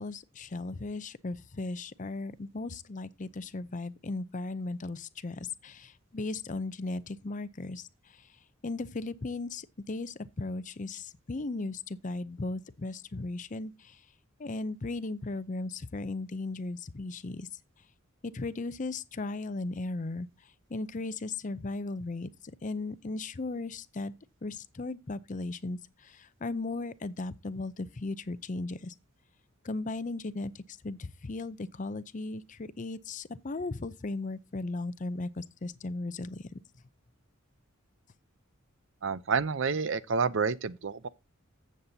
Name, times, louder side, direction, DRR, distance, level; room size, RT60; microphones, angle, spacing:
voice 1, 0.0-7.9 8.6-14.0 14.4-17.5 18.2-20.3 20.7-22.3 22.6-24.1 24.4-25.8 26.0-28.9 29.6-36.4, left 3 dB, 35° left, 0.6 m, -36 dB
voice 2, 39.0-41.1, right 5 dB, 65° right, 0.6 m, -29 dB
14.5 x 7.4 x 2.8 m
head